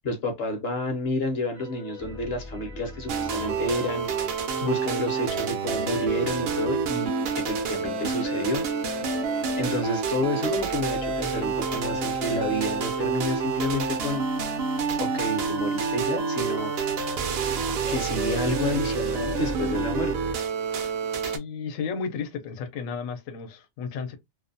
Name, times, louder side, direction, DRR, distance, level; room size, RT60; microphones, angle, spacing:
voice 1, 0.0-8.6 9.5-14.2 15.0-16.7 17.9-20.1, left 1 dB, 55° left, 0.8 m, -30 dB
sound 1, 1.5-6.2 8.8-14.9 17.4-19.6, left 2 dB, 5° left, 0.3 m, -45 dB
sound 2, 3.1-21.4, right 5 dB, 65° right, 0.6 m, -28 dB
voice 2, 21.2-24.2, left 5 dB, 85° left, 1.0 m, -33 dB
2.5 x 2.1 x 2.6 m
omnidirectional pair, 1.4 m